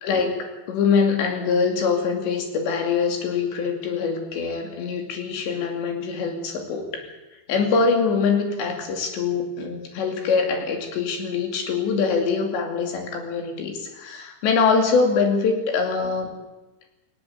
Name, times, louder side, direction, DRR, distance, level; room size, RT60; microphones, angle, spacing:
voice 1, 0.0-7.1 7.5-16.3, left 5 dB, 85° left, 4 dB, 4.9 m, -23 dB
18.5 x 18.0 x 8.2 m, 1.1 s
omnidirectional pair, 4.9 m